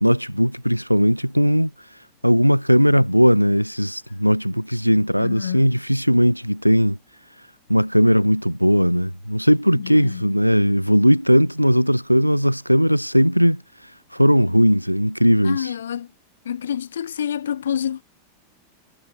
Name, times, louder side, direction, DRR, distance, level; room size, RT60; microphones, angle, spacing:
voice 1, 0.0-1.7 2.2-7.0 7.7-13.6 14.1-15.7, equal, 90° right, 0.5 m, -18 dB
voice 2, 5.2-5.7 9.7-10.2 15.4-16.1 16.4-18.0, left 9 dB, 65° left, 1.1 m, -28 dB
figure-of-eight pair, 90°, 0 cm